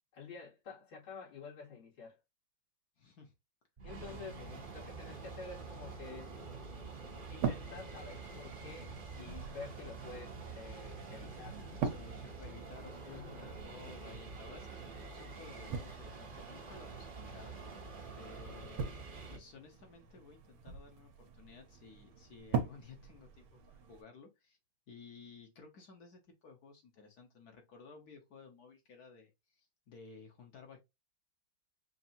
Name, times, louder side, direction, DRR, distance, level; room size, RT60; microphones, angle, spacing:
voice 1, 0.1-2.2 3.8-4.4 4.7-6.3 7.3-11.6 13.1-13.5, left 4 dB, 85° left, 3.1 m, -49 dB
voice 2, 3.0-3.3 4.1-4.6 11.7-17.8 18.2-18.9 19.3-24.6 24.9-30.8, left 5 dB, 55° left, 1.3 m, -55 dB
sound 1, 3.8-19.4, right 4 dB, 45° right, 0.7 m, -47 dB
sound 2, 6.0-24.0, right 6 dB, 80° right, 1.6 m, -44 dB
5.6 x 2.6 x 2.7 m
omnidirectional pair, 2.2 m